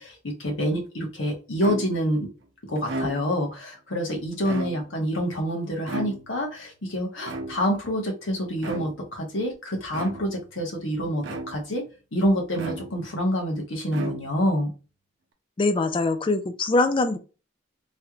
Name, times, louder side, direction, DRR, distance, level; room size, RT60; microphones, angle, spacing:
voice 1, 0.0-2.3 2.6-11.8 12.1-14.7, equal, 65° left, 1.2 m, -27 dB
sound 1, 1.6-2.2 2.7-3.5 4.3-5.1 5.9-6.5 7.2-7.9 8.6-9.1 9.9-10.5 11.2-11.8 12.5-13.2 13.9-14.6, right 2 dB, 65° right, 0.6 m, -35 dB
voice 2, 15.6-17.2, left 2 dB, 25° left, 0.4 m, -23 dB
3.2 x 3.0 x 2.4 m
head